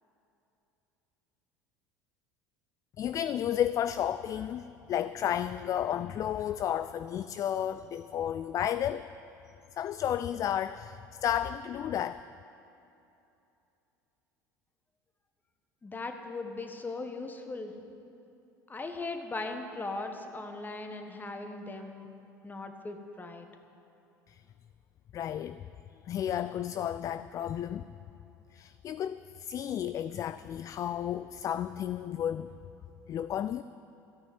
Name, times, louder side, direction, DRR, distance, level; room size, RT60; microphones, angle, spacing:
voice 1, 3.0-9.1 9.7-12.3 24.3-24.4 25.1-25.6 26.1-27.9 28.5-32.5 33.1-33.6, left 10 dB, 35° left, 0.4 m, -32 dB
voice 2, 15.8-17.7 18.7-22.1 22.4-23.5, left 3 dB, 20° left, 1.6 m, -38 dB
14.0 x 9.3 x 9.3 m
figure-of-eight pair, 70°, 10 cm